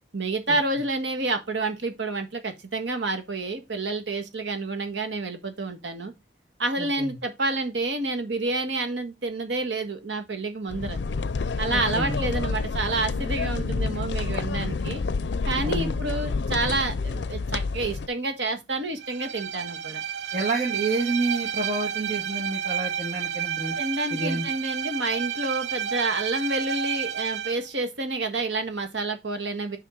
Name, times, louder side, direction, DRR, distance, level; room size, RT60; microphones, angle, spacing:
voice 1, 0.1-6.1 6.6-11.0 11.6-15.0 15.4-20.0 23.8-29.8, right 2 dB, 90° right, 1.6 m, -29 dB
voice 2, 6.8-7.1 11.7-12.2 15.6-15.9 20.3-23.8 24.1-24.4, right 3 dB, 40° right, 1.7 m, -29 dB
sound 1, 10.7-18.1, left 4 dB, 75° left, 0.5 m, -28 dB
Bowed string instrument, 19.0-27.6, right 8 dB, 70° right, 0.6 m, -31 dB
7.3 x 5.7 x 3.7 m
head